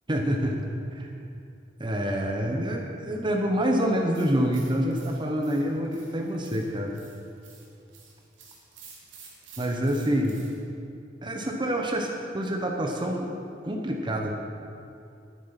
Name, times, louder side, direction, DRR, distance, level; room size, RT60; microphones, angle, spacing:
voice 1, 0.1-1.1 1.8-7.0 9.6-10.4 11.2-12.1 12.3-13.3 13.6-14.3, equal, 25° right, 1 dB, 1.0 m, -27 dB
sound 1, 4.1-10.6, right 5 dB, 90° right, 2.8 m, -51 dB
11.5 x 9.7 x 5.8 m, 2.5 s
head